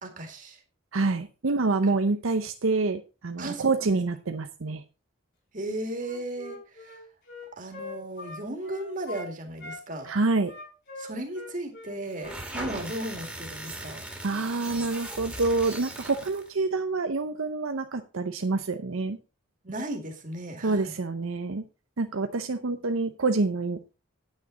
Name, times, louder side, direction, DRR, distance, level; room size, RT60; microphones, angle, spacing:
voice 1, 0.0-0.6 1.8-1.9 3.4-3.9 5.5-7.0 7.5-10.1 11.0-14.0 19.6-20.9, right 1 dB, 40° right, 3 dB, 2.2 m, -36 dB
voice 2, 0.9-4.8 10.0-10.5 14.2-19.2 20.6-21.6 22.0-23.9, right 3 dB, 75° right, 8 dB, 0.7 m, -27 dB
Wind instrument woodwind instrument, 5.9-9.3 9.6-12.9, left 3 dB, 55° left, 5.7 m, -43 dB
sound 1, 12.1-16.5, right 1 dB, 5° right, 2.2 m, -39 dB
9.5 x 9.0 x 3.9 m, 0.30 s
head